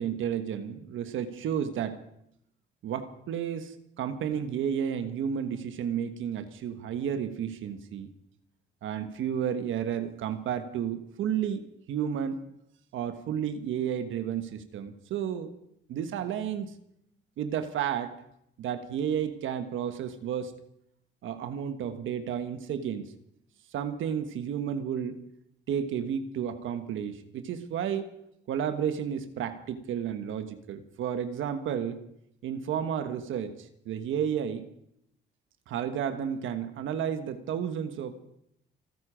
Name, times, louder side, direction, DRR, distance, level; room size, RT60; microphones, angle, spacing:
voice 1, 0.0-2.0 2.8-8.1 8.8-12.4 12.9-15.5 15.9-16.7 17.4-18.1 18.6-20.5 21.2-23.1 23.7-25.2 25.7-28.1 28.5-32.0 32.4-34.7 35.7-38.1, right 8 dB, 80° right, 9 dB, 1.3 m, -32 dB
28.0 x 9.7 x 5.1 m, 0.76 s
cardioid pair, 90°, 20 cm